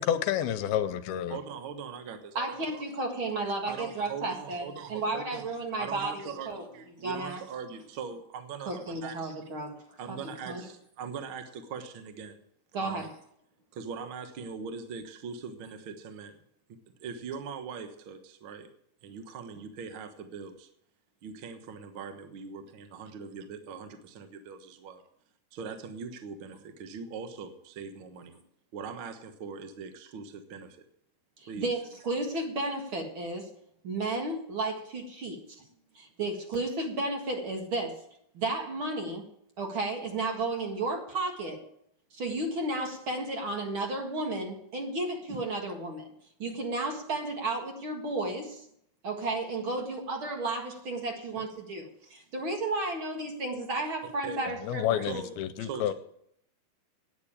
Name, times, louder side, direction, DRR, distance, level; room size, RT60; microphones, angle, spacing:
voice 1, 0.0-1.4 54.6-55.9, left 10 dB, 80° left, 11 dB, 2.6 m, -29 dB
voice 2, 1.3-2.8 3.7-5.5 5.8-9.3 10.0-12.4 12.8-13.1 13.7-16.4 17.0-18.7 19.0-20.7 21.2-25.0 25.5-28.3 28.7-30.9 31.5-31.7 45.3-45.4 54.0-54.4 55.0-55.9, right 6 dB, 75° right, 7 dB, 1.2 m, -41 dB
voice 3, 2.4-4.6 4.9-6.6 7.0-7.4 8.7-9.7 10.1-10.6 12.7-13.1 31.4-33.5 33.8-35.6 35.9-38.0 38.3-39.3 39.6-41.6 42.1-46.1 46.4-48.7 49.0-55.1, right 2 dB, 45° right, 2 dB, 1.9 m, -33 dB
9.5 x 9.2 x 8.6 m, 0.71 s
omnidirectional pair, 4.4 m